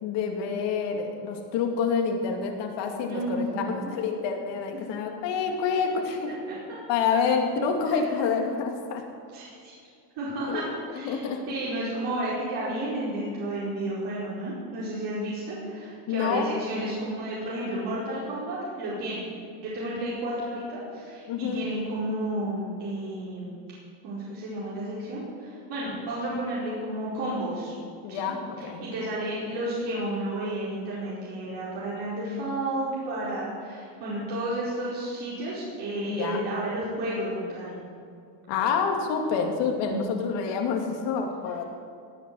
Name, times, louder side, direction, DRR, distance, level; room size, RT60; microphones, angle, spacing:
voice 1, 0.0-6.3 6.9-9.0 10.5-10.6 10.9-11.4 16.1-16.5 21.3-21.6 28.0-28.9 36.1-36.4 38.5-41.6, left 6 dB, 75° left, 3 dB, 2.5 m, -28 dB
voice 2, 3.1-3.9 6.0-6.6 7.9-8.4 9.3-9.7 10.2-10.6 10.9-19.3 19.6-23.5 24.0-27.7 28.1-37.8 39.9-40.1, right 1 dB, 70° right, -8 dB, 4.8 m, -32 dB
18.0 x 8.6 x 7.7 m, 2.4 s
cardioid pair, 160°, 43 cm